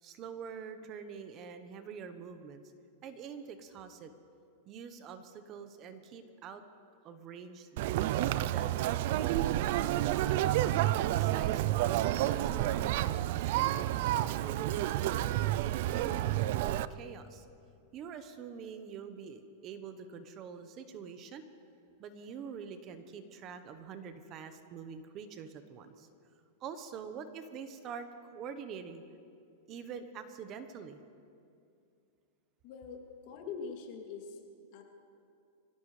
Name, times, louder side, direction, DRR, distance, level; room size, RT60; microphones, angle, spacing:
voice 1, 0.0-2.6 3.0-4.1 4.7-6.6 7.0-7.7 8.3-8.7 9.1-9.3 9.9-13.0 13.4-14.0 14.3-15.1 15.6-17.4 17.9-21.4 22.0-26.1 26.6-29.0 29.7-31.0, right 6 dB, 35° right, 9 dB, 1.1 m, -45 dB
Conversation, 7.8-16.9, right 14 dB, 60° right, 0.4 m, -30 dB
voice 2, 32.6-34.4 34.7-34.8, left 5 dB, 50° left, 1 dB, 2.8 m, -43 dB
25.0 x 17.0 x 3.3 m, 2.4 s
supercardioid pair, 140°, 0 cm